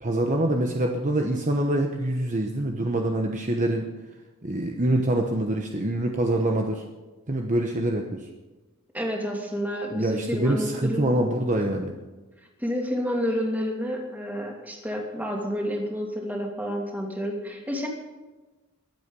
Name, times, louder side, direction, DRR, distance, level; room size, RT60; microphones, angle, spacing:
voice 1, 0.0-3.9 4.4-6.8 7.3-8.3 9.9-11.9, right 1 dB, 35° right, 2 dB, 1.0 m, -25 dB
voice 2, 8.9-11.1 12.6-17.9, equal, 5° right, 0 dB, 2.8 m, -29 dB
22.5 x 8.6 x 5.4 m, 1.2 s
head